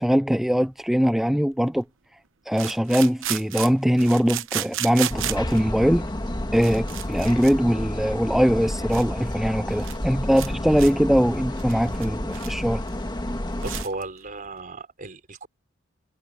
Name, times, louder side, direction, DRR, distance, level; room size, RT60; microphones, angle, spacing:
voice 1, 0.0-1.8 2.5-6.0 6.5-12.8, equal, ahead, 0.3 m, -21 dB
sound 1, 0.7-0.8 2.5-5.6 6.3-6.4 6.5-7.5 7.8-8.0 8.5-8.6 8.9-9.0 9.3-9.4 9.7-10.0 10.3-10.5 10.8-10.9 11.3-12.6 12.9-13.0 13.3-13.4 13.6-14.0, right 12 dB, 65° right, 1.0 m, -33 dB
sound 2, 5.1-13.8, left 1 dB, 20° left, 1.7 m, -30 dB
voice 2, 13.6-15.5, right 3 dB, 40° right, 4.0 m, -35 dB
head